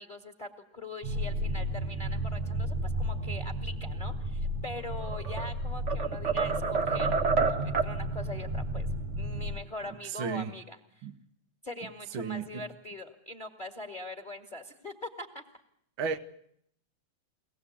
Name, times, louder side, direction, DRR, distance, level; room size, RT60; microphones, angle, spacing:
voice 1, 0.0-8.9 9.2-11.1 11.6-15.4, left 2 dB, 20° left, 5 dB, 1.8 m, -42 dB
sound 1, 1.0-9.6, equal, 85° right, 5.1 m, -33 dB
sound 2, 5.0-5.5 5.9-8.0, right 5 dB, 30° right, 1.4 m, -28 dB
voice 2, 10.1-10.5 11.0-11.1 12.1-12.6 16.0-16.2, right 6 dB, 60° right, 9 dB, 1.5 m, -33 dB
24.0 x 19.0 x 8.5 m, 0.71 s
omnidirectional pair, 3.4 m